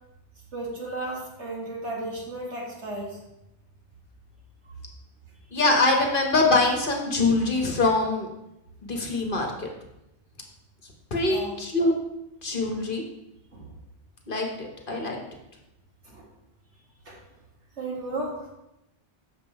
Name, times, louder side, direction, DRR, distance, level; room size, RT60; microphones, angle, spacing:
voice 1, 0.5-3.2 4.7-4.8 11.2-11.5 13.5-13.7 16.1-16.3 17.1-17.2 17.8-18.5, right 2 dB, 85° right, -1 dB, 2.2 m, -34 dB
voice 2, 5.5-8.3 8.8-9.7 11.1-11.9 12.4-13.0 14.3-15.2, left 2 dB, 50° left, 2 dB, 1.5 m, -24 dB
7.7 x 6.8 x 4.7 m, 0.89 s
omnidirectional pair, 1.1 m